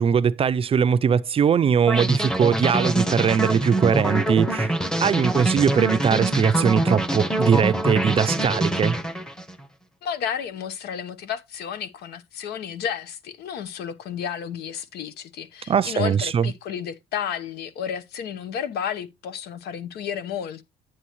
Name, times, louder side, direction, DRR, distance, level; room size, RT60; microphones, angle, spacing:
voice 1, 0.0-4.7 5.0-9.0 15.7-16.5, right 7 dB, 35° right, 0.4 m, -21 dB
sound 1, 1.9-9.5, right 1 dB, 5° left, 0.9 m, -24 dB
voice 2, 10.0-20.6, left 8 dB, 75° left, 1.0 m, -32 dB
9.8 x 7.8 x 3.1 m
cardioid pair, 110°, 17 cm